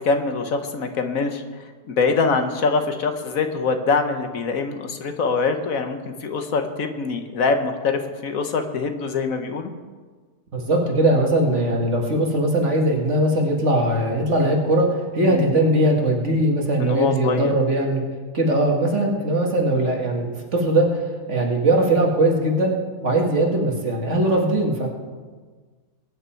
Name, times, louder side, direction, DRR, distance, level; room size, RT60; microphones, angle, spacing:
voice 1, 0.0-1.4 1.9-9.7 15.2-15.5 16.8-17.5, left 4 dB, 65° left, 7 dB, 1.4 m, -24 dB
voice 2, 10.5-18.0 18.3-21.0 21.3-22.8 23.0-24.9, right 1 dB, 50° right, 0 dB, 2.3 m, -20 dB
21.0 x 9.6 x 4.5 m, 1.4 s
omnidirectional pair, 1.6 m